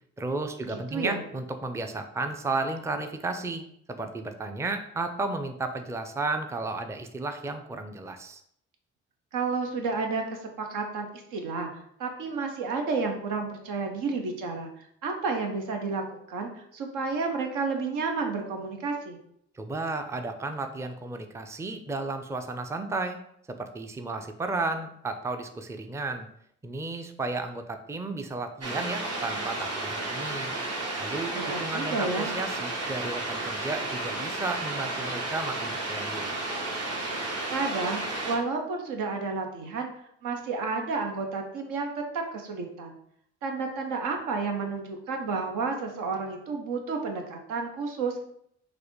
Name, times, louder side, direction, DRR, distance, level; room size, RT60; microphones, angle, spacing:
voice 1, 0.2-3.6 3.9-8.4 19.5-23.2 23.5-26.3 26.6-30.6 31.0-36.3, right 3 dB, 10° right, 7 dB, 0.4 m, -33 dB
voice 2, 0.7-1.2 9.3-11.7 12.0-14.7 15.0-19.2 31.3-32.3 37.5-39.9 40.2-43.0 43.4-48.2, right 4 dB, 80° right, 3 dB, 0.7 m, -31 dB
sound 1, 28.6-38.4, right 2 dB, 50° right, 1.1 m, -32 dB
4.0 x 2.5 x 3.1 m, 0.69 s
hypercardioid pair, 50°, 31 cm